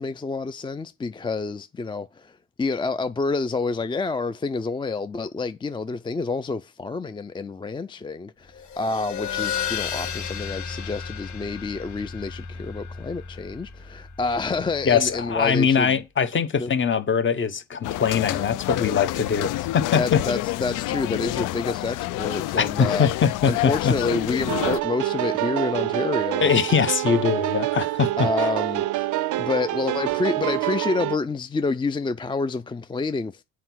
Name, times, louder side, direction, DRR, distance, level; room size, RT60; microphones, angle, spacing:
voice 1, 0.0-16.0 16.5-16.7 19.9-23.1 23.5-26.5 28.2-29.1 29.4-33.4, left 3 dB, 15° left, 0.4 m, -28 dB
sound 1, 8.5-15.6, left 7 dB, 70° left, 1.6 m, -34 dB
voice 2, 14.8-20.2 22.6-23.9 26.4-28.3, left 6 dB, 40° left, 1.1 m, -22 dB
sound 2, 17.8-24.8, left 17 dB, 90° left, 0.5 m, -28 dB
sound 3, 24.5-31.2, right 17 dB, 75° right, 0.5 m, -26 dB
7.8 x 4.6 x 6.1 m
cardioid pair, 90°, 30 cm